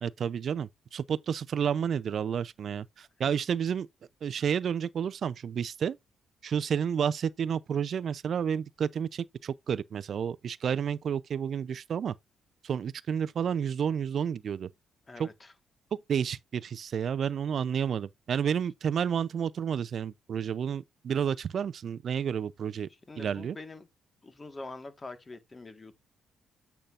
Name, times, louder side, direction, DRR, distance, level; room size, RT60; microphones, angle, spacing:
voice 1, 0.0-3.9 4.2-6.0 6.4-12.1 12.6-14.7 15.2-15.3 16.1-22.9 23.2-23.6, right 8 dB, 55° right, 0.6 m, -30 dB
voice 2, 15.1-15.5 22.9-23.9 24.2-25.9, left 3 dB, 25° left, 1.6 m, -45 dB
8.8 x 5.7 x 2.5 m
cardioid pair, 90°, 0 cm